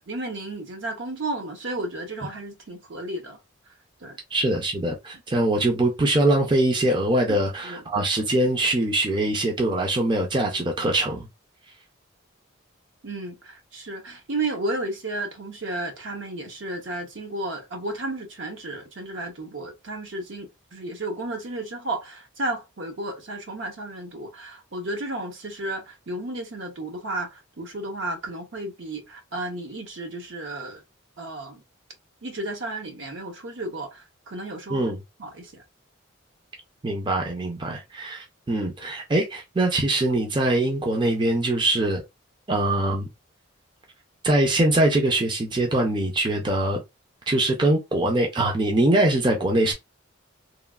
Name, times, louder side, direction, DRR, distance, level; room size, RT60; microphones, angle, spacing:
voice 1, 0.0-3.4 4.0-4.2 7.3-7.8 13.0-30.8 31.2-31.6 32.2-34.9 35.2-35.6 37.7-37.8, right 2 dB, 65° right, 0.7 m, -33 dB
voice 2, 4.3-11.3 34.7-35.0 36.8-42.0 42.5-43.1 44.2-46.8 47.3-49.7, right 1 dB, 20° right, 0.4 m, -23 dB
3.0 x 2.3 x 2.3 m
head